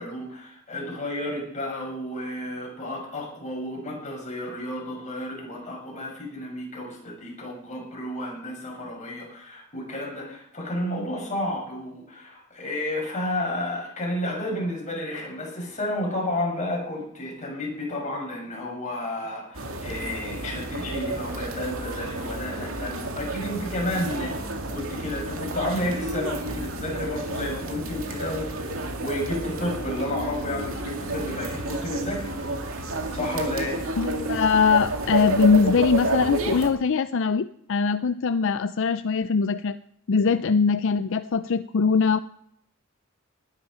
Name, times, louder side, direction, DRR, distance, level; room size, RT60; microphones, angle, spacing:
voice 1, 0.0-32.3 33.1-33.8, left 1 dB, 35° left, -1 dB, 6.5 m, -31 dB
sound 1, 19.5-36.7, right 2 dB, 70° right, 2.4 m, -31 dB
voice 2, 34.0-39.8 40.1-42.2, left 5 dB, 60° left, 12 dB, 0.5 m, -22 dB
19.5 x 11.0 x 5.6 m, 0.72 s
head